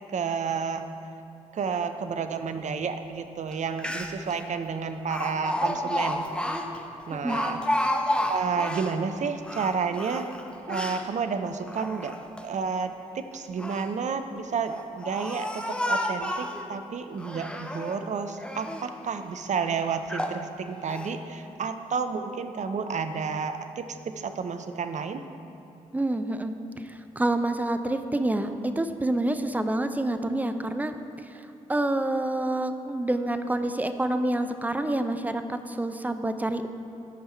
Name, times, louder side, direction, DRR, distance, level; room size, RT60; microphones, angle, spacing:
voice 1, 0.1-0.8 1.5-6.3 7.1-7.6 8.3-10.3 10.7-12.1 12.4-23.8 24.2-25.2, right 5 dB, 45° right, 9 dB, 0.7 m, -31 dB
Speech, 3.5-3.6 3.8-4.3 5.1-8.9 9.4-11.0 11.6-12.4 13.3-13.9 14.6-16.6 17.2-18.0 18.4-18.9 19.5-19.6 20.1-20.4 20.9-21.1, left 1 dB, 5° left, 0.9 m, -31 dB
voice 2, 25.9-30.9 31.2-36.7, right 1 dB, 10° right, 8 dB, 0.7 m, -28 dB
14.0 x 5.6 x 4.4 m, 2.6 s
hypercardioid pair, 40°, 16 cm